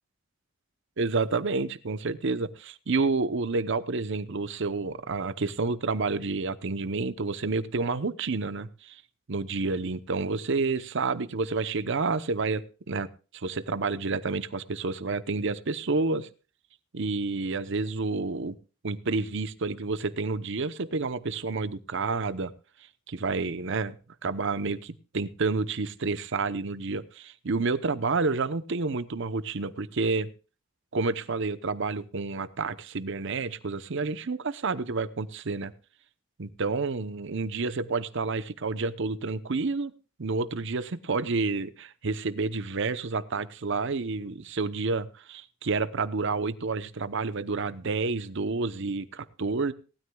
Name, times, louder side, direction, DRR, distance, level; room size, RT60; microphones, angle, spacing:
voice 1, 1.0-9.0 9.3-13.1 13.3-16.3 16.9-18.6 18.8-22.5 23.1-24.0 24.2-30.3 30.9-35.7 36.4-39.9 40.2-49.7, right 3 dB, 65° right, 14 dB, 0.8 m, -29 dB
19.0 x 13.0 x 2.3 m, 0.34 s
head